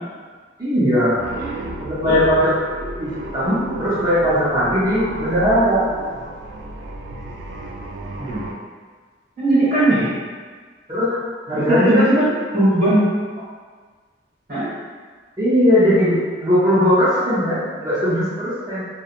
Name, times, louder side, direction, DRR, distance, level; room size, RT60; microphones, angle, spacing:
voice 1, 0.6-1.2 1.8-2.7 3.0-5.8 10.9-11.2 11.5-12.1 15.4-18.8, equal, 20° right, -11 dB, 0.6 m, -18 dB
sound 1, 1.2-8.5, right 2 dB, 85° right, 0.3 m, -32 dB
voice 2, 8.2-8.5 9.4-10.1 11.5-13.1 14.5-14.7, right 1 dB, 45° right, -11 dB, 0.9 m, -18 dB
2.8 x 2.2 x 2.4 m, 1.5 s
head